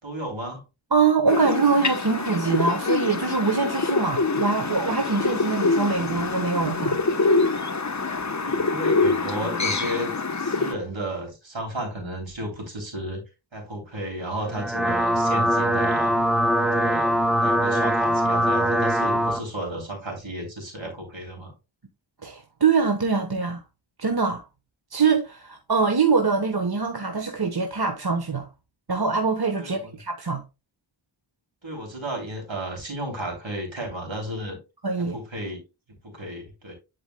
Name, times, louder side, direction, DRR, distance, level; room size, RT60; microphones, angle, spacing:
voice 1, 0.0-0.6 8.4-13.2 13.5-16.1 16.6-17.1 17.4-21.5 29.6-30.0 31.6-34.6 35.0-35.6 35.9-36.7, right 1 dB, 70° right, 3.4 m, -33 dB
voice 2, 0.9-7.0 22.2-23.6 24.0-24.4 24.9-28.5 28.9-30.4 34.8-35.2, right 4 dB, 50° right, 1.2 m, -23 dB
sound 1, 1.3-10.7, left 3 dB, 35° left, 0.9 m, -25 dB
sound 2, 14.4-19.4, equal, ahead, 0.9 m, -22 dB
10.5 x 4.9 x 2.2 m
wide cardioid pair, 40°, 48 cm